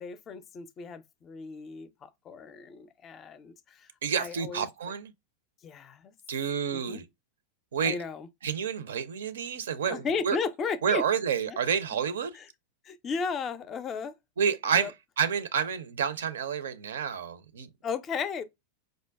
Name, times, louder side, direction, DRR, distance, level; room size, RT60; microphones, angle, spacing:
voice 1, 0.0-3.9 4.2-4.7 5.6-6.1 6.7-7.0 7.8-8.3 9.9-11.0 11.5-11.6 12.3-12.4 12.8-14.2 14.7-14.9 17.8-18.4, left 5 dB, 30° left, 0.4 m, -35 dB
voice 2, 4.0-5.1 6.3-7.0 7.7-8.0 8.4-10.4 10.8-12.4 14.4-17.7, right 7 dB, 65° right, 0.5 m, -29 dB
4.7 x 2.1 x 2.2 m
figure-of-eight pair, 90°, 0 cm